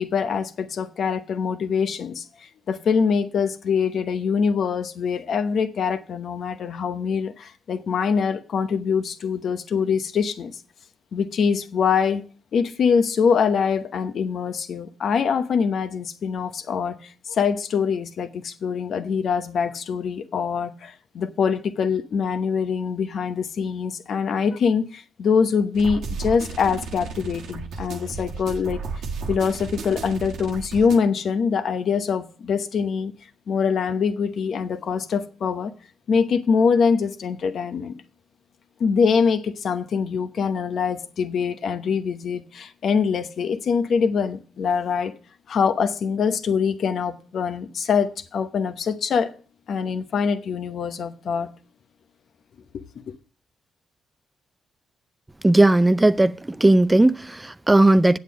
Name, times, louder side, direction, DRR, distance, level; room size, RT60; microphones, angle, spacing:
voice 1, 0.0-2.2 2.7-10.6 11.1-12.2 12.5-28.8 29.3-33.1 33.5-35.7 36.1-38.0 38.8-45.1 45.5-49.3 49.7-51.5, left 6 dB, 65° left, 0.9 m, -24 dB
sound 1, 25.7-31.0, right 5 dB, 75° right, 1.2 m, -33 dB
voice 2, 55.4-58.2, right 2 dB, 15° right, 0.4 m, -17 dB
8.1 x 7.3 x 6.3 m
supercardioid pair, 60°, 0 cm